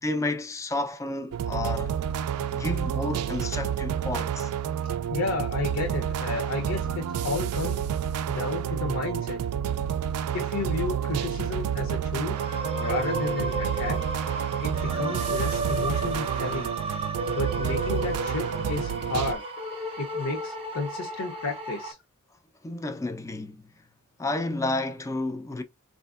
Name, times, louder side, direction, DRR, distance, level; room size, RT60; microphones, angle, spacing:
voice 1, 0.0-2.0 2.5-4.5 22.6-23.6 24.2-25.6, left 2 dB, 15° left, 0.3 m, -31 dB
sound 1, 1.3-19.3, right 8 dB, 85° right, 0.4 m, -29 dB
voice 2, 5.1-7.8 8.3-9.4 10.3-12.4 12.8-14.0 14.6-16.7 17.3-19.4 20.0-22.0, left 3 dB, 65° left, 0.6 m, -32 dB
sound 2, 12.3-21.9, right 2 dB, 25° right, 0.6 m, -33 dB
4.1 x 2.5 x 2.3 m
head